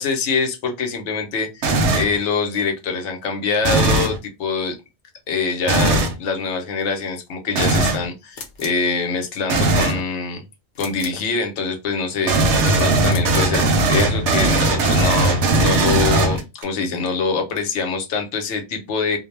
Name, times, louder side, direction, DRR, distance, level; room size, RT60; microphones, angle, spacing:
voice 1, 0.0-4.7 5.3-10.4 10.8-13.6 13.9-19.2, left 4 dB, 75° left, 4 dB, 0.9 m, -24 dB
sound 1, 1.6-2.2 3.6-4.2 5.7-6.1 7.6-8.1 9.5-10.0 12.3-16.6, right 2 dB, 80° right, 0.9 m, -18 dB
sound 2, 8.3-8.9 10.8-11.3 13.0-13.6, left 4 dB, 55° left, 0.6 m, -37 dB
2.4 x 2.0 x 3.0 m, 0.25 s
omnidirectional pair, 1.2 m